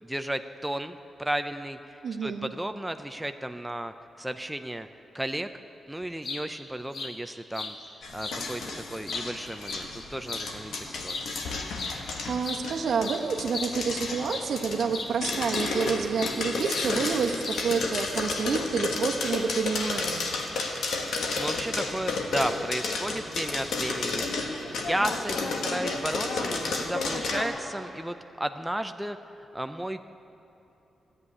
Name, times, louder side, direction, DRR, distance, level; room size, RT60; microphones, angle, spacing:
voice 1, 0.0-1.9 2.2-4.9 5.1-5.5 5.9-7.8 8.1-11.2 21.4-29.2 29.5-30.0, right 1 dB, 5° right, 8 dB, 0.4 m, -33 dB
voice 2, 2.0-2.5 11.9-20.3, right 5 dB, 70° right, 4 dB, 1.0 m, -29 dB
sound 1, 6.0-6.4 6.9-7.1 7.5-7.7 8.2-8.4 8.8-10.5 11.0-11.3 11.8-12.0 12.2-14.6 14.9-15.1 15.5-16.4 16.7-16.9 17.4-17.8, left 3 dB, 65° left, 1.5 m, -36 dB
sound 2, 8.0-27.4, left 3 dB, 85° left, 1.5 m, -32 dB
14.0 x 8.1 x 9.7 m, 2.9 s
cardioid pair, 100°, 0 cm